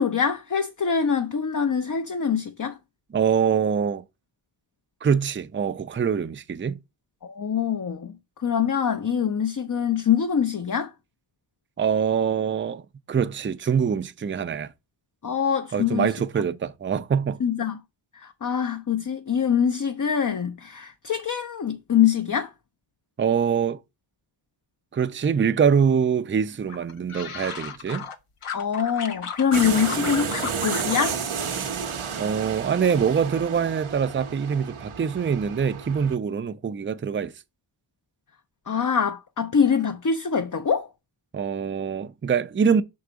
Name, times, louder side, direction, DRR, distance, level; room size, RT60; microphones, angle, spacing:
voice 1, 0.0-2.8 7.2-10.9 15.2-16.1 17.4-17.8 18.1-22.5 28.5-31.2 38.7-40.9, left 7 dB, 40° left, 0.6 m, -24 dB
voice 2, 3.1-4.0 5.0-6.8 11.8-12.8 13.1-14.7 15.7-17.4 23.2-23.8 24.9-28.1 32.2-37.3 41.3-42.8, right 7 dB, 25° right, 0.4 m, -24 dB
sound 1, 26.7-28.2 28.4-31.1 31.4-32.2 32.5-32.9, left 6 dB, 85° left, 0.9 m, -35 dB
sound 2, 29.5-36.2, right 6 dB, 85° right, 0.8 m, -31 dB
5.9 x 4.8 x 3.8 m
cardioid pair, 45°, 49 cm